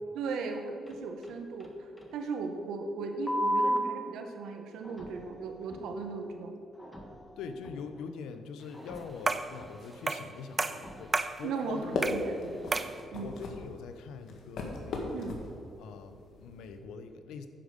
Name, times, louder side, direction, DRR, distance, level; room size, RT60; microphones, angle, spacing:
voice 1, 0.1-6.6 11.4-13.3 15.1-15.4, right 4 dB, 85° right, 5 dB, 1.1 m, -37 dB
sound 1, 0.9-1.7 2.0-2.1 3.3-3.8 4.8-6.1 6.7-8.0 8.7-10.0 10.6-11.5, equal, 15° left, 1.5 m, -36 dB
voice 2, 7.4-12.1 13.2-15.3 15.8-17.5, left 5 dB, 85° left, 9 dB, 0.7 m, -43 dB
sound 2, 9.3-9.6 10.1-10.3 10.6-11.4 12.0-12.3 12.7-13.0, right 3 dB, 25° right, 0.4 m, -31 dB
sound 3, 11.6-16.8, left 2 dB, 70° left, 1.7 m, -38 dB
10.0 x 5.2 x 6.5 m, 2.6 s
cardioid pair, 90°, 0 cm